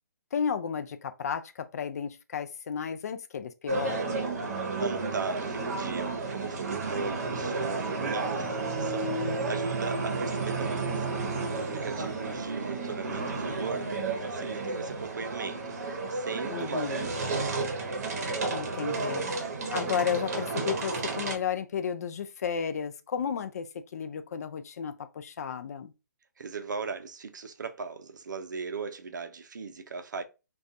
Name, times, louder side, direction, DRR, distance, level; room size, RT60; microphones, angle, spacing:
voice 1, 0.3-4.2 16.5-17.1 18.5-19.3 19.7-23.7 23.9-25.9, left 7 dB, 55° left, 0.3 m, -33 dB
sound 1, 3.7-21.4, right 3 dB, 55° right, 0.8 m, -32 dB
voice 2, 4.8-11.0 11.3-17.3 26.4-30.2, right 5 dB, 80° right, 0.5 m, -38 dB
2.5 x 2.3 x 2.4 m
hypercardioid pair, 145°, 10 cm